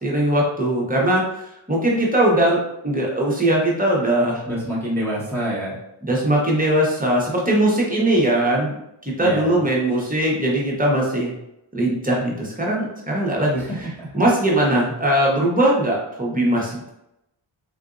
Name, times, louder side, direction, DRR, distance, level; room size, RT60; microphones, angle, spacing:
voice 1, 0.0-1.2 1.7-2.6 2.8-4.4 6.1-8.8 9.2-11.3 11.7-13.9 14.1-16.9, right 1 dB, 15° right, -3 dB, 0.9 m, -20 dB
voice 2, 4.4-5.8 9.2-9.6 13.6-14.1, equal, 5° left, -9 dB, 1.1 m, -27 dB
3.8 x 2.6 x 2.5 m, 0.84 s
wide cardioid pair, 95°, 50 cm